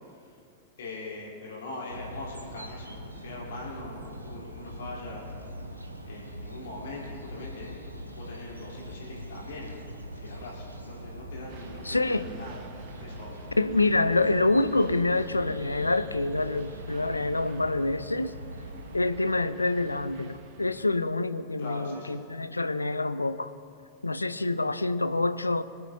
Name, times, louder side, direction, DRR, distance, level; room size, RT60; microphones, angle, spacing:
voice 1, 0.8-5.3 6.0-7.8 8.1-9.9 10.2-12.6 13.0-13.5 21.6-22.1, left 2 dB, 60° left, -4 dB, 3.2 m, -41 dB
sound 1, 1.9-19.1, right 1 dB, 85° right, 1.1 m, -42 dB
sound 2, 11.5-20.9, right 4 dB, 45° right, 1.1 m, -49 dB
voice 2, 11.9-12.3 13.6-18.4 18.9-23.5 24.0-25.6, left 2 dB, 80° left, 13 dB, 0.4 m, -26 dB
25.5 x 8.7 x 2.7 m, 2.3 s
figure-of-eight pair, 90°, 0 cm